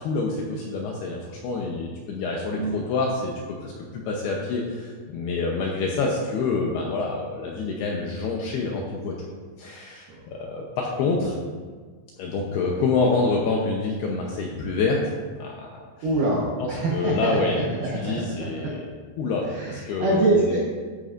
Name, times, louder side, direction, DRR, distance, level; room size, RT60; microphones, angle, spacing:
voice 1, 0.0-3.3 3.6-9.3 9.6-11.4 12.2-15.1 15.4-15.8 16.6-17.6 17.8-18.9 19.2-20.5, left 4 dB, 80° left, -1 dB, 2.4 m, -27 dB
voice 2, 16.0-18.7 19.5-20.6, right 2 dB, 75° right, -5 dB, 2.0 m, -25 dB
13.5 x 9.4 x 2.5 m, 1.5 s
omnidirectional pair, 5.6 m